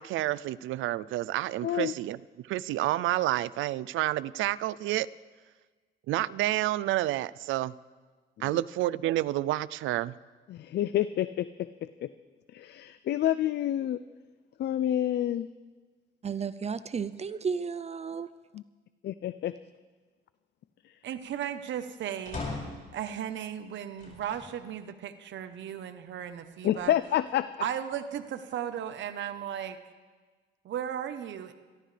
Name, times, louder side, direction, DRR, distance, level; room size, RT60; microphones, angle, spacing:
voice 1, 0.0-2.2 2.5-5.1 6.1-7.7 8.4-10.1, right 15 dB, 85° right, 20 dB, 0.4 m, -29 dB
voice 2, 1.6-1.9 8.4-8.6 10.5-11.5 11.8-12.1 12.5-14.0 14.6-15.5 18.5-18.6 19.0-19.5 20.8-20.9 26.6-27.5, left 12 dB, 60° left, 14 dB, 0.4 m, -28 dB
voice 3, 16.2-18.3, right 6 dB, 35° right, 15 dB, 0.5 m, -33 dB
voice 4, 21.0-22.4 22.9-26.9 27.6-29.8 30.6-31.5, right 9 dB, 70° right, 9 dB, 0.9 m, -35 dB
sound 1, 22.2-22.9 24.0-24.5 25.2-25.3 26.5-27.3, left 3 dB, 40° left, 5.8 m, -39 dB
26.5 x 12.5 x 3.3 m, 1.4 s
cardioid pair, 90°, 20 cm